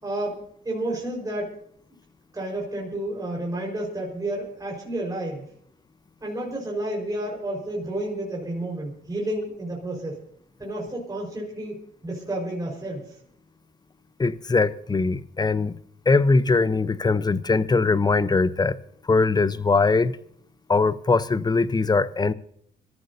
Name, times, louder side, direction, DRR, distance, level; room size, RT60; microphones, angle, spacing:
voice 1, 0.0-1.5 2.3-5.5 6.2-10.2 10.6-11.8 12.0-13.1, right 1 dB, 20° right, 4.6 m, -31 dB
voice 2, 14.2-15.7 16.1-18.8 19.1-20.2 20.7-22.3, left 3 dB, 20° left, 0.7 m, -21 dB
26.0 x 14.0 x 2.7 m
cardioid pair, 90°, 20 cm